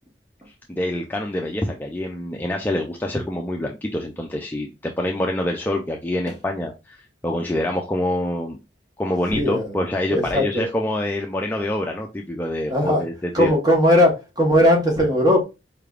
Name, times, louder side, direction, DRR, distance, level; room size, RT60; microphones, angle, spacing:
voice 1, 0.7-8.6 9.0-13.5, left 1 dB, 10° left, 0.3 m, -26 dB
voice 2, 9.3-9.7 10.1-10.7 12.7-13.0 13.3-15.4, equal, 20° right, 1.2 m, -18 dB
4.7 x 3.4 x 2.4 m
head